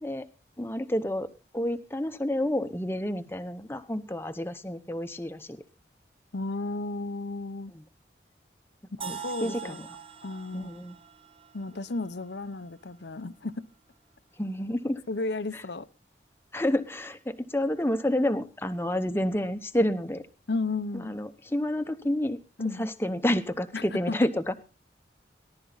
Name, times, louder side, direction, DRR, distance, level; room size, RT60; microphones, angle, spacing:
voice 1, 0.6-5.6 7.7-7.8 9.0-9.8 10.5-11.0 14.4-15.0 15.5-15.6 16.5-20.2 20.9-22.4 22.8-24.5, left 1 dB, 15° left, 0.9 m, -29 dB
voice 2, 6.3-7.7 9.1-9.8 10.2-10.8 11.5-13.7 15.1-15.9 20.5-21.1 22.6-22.9 23.7-24.3, left 3 dB, 80° left, 0.8 m, -33 dB
sound 1, 9.0-12.9, right 7 dB, 30° right, 1.0 m, -43 dB
19.0 x 11.5 x 4.0 m
head